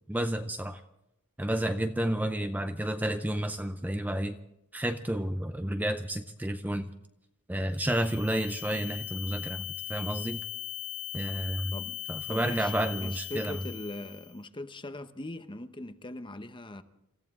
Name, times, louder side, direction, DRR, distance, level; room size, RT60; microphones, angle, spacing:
voice 1, 0.1-0.8 1.4-4.3 4.7-6.9 7.5-10.4 11.1-11.7 12.1-13.6, right 1 dB, 10° right, 0.5 m, -31 dB
sound 1, 7.7-14.3, left 12 dB, 75° left, 3.3 m, -39 dB
voice 2, 12.3-16.8, left 1 dB, 20° left, 0.8 m, -40 dB
27.5 x 14.5 x 3.6 m
head